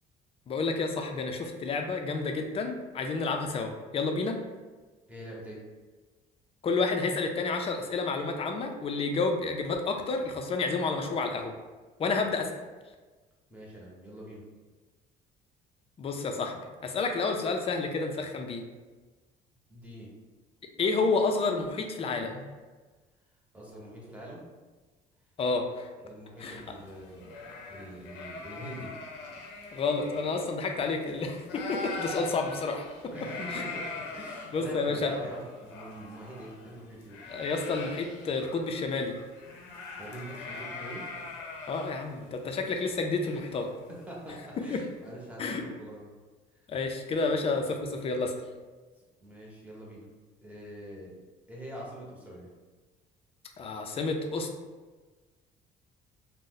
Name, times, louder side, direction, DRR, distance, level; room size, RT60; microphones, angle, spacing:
voice 1, 0.5-4.4 6.6-11.5 12.0-12.5 16.0-18.6 20.8-22.4 25.4-25.9 26.4-26.6 29.7-32.9 33.5-33.6 34.5-35.1 37.3-39.1 41.7-43.7 44.6-44.8 45.4-45.6 46.7-48.3 53.6-54.5, left 3 dB, 35° left, 4 dB, 0.4 m, -30 dB
voice 2, 5.1-5.6 13.5-14.4 19.7-20.1 23.5-24.4 26.0-28.9 33.1-37.2 40.0-41.1 43.3-43.4 44.1-46.1 46.5-46.6 47.3-47.4 49.2-50.1 50.4-51.1 51.5-52.5, right 1 dB, 10° right, -4 dB, 0.9 m, -44 dB
sound 1, 26.4-31.1 31.4-44.3, left 3 dB, 90° left, 0.6 m, -42 dB
2.6 x 2.0 x 3.8 m, 1.3 s
cardioid pair, 110°, 17 cm